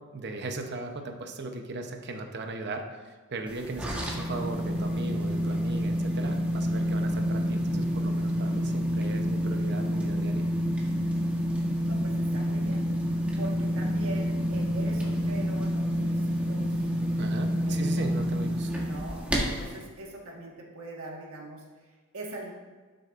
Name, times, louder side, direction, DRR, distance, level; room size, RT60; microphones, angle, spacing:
voice 1, 0.1-10.5 17.2-18.7, right 2 dB, 50° right, 4 dB, 0.8 m, -37 dB
sound 1, 3.5-19.8, equal, 5° right, 1.2 m, -28 dB
voice 2, 11.8-12.9 13.4-16.8 17.7-18.1 18.8-21.9 22.1-22.5, right 1 dB, 70° right, -1 dB, 1.6 m, -42 dB
12.0 x 6.4 x 2.5 m, 1.4 s
head